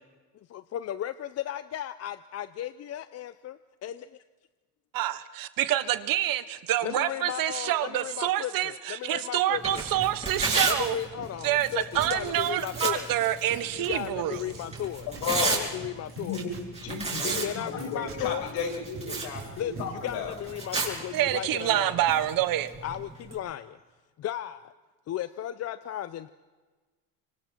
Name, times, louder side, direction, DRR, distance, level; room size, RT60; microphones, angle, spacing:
voice 1, 0.5-4.2 6.8-9.8 10.6-13.1 13.7-15.1 15.4-16.5 17.4-18.5 19.5-21.9 22.8-23.8 24.2-24.7 25.1-26.3, left 11 dB, 40° left, 14 dB, 0.6 m, -35 dB
voice 2, 4.9-11.0 11.4-14.4 21.1-22.7, right 13 dB, 60° right, 13 dB, 1.2 m, -27 dB
Tearing, 9.5-23.4, right 3 dB, 15° right, 6.5 m, -35 dB
sound 1, 9.5-22.3 22.6-22.7 23.5-23.8, right 5 dB, 35° right, 4.3 m, -47 dB
voice 3, 15.1-15.6 16.1-16.5 16.8-20.3, left 5 dB, 70° left, 2 dB, 5.8 m, -33 dB
26.5 x 24.0 x 4.5 m, 1.3 s
cardioid pair, 120°, 39 cm